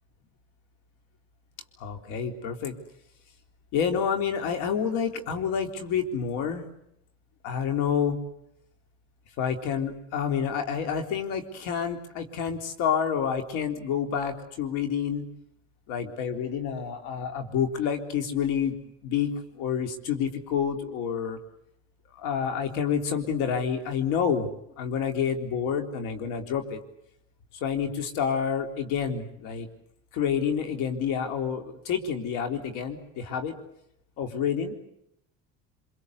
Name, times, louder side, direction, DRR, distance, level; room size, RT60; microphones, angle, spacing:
voice 1, 1.8-2.7 3.7-6.7 7.4-8.2 9.4-15.3 15.9-18.8 19.0-21.4 22.2-24.5 24.8-26.8 27.5-29.7 30.1-33.5 34.2-34.7, left 7 dB, 80° left, 6 dB, 3.9 m, -28 dB
25.5 x 24.0 x 8.3 m, 0.77 s
supercardioid pair, 100°, 30 cm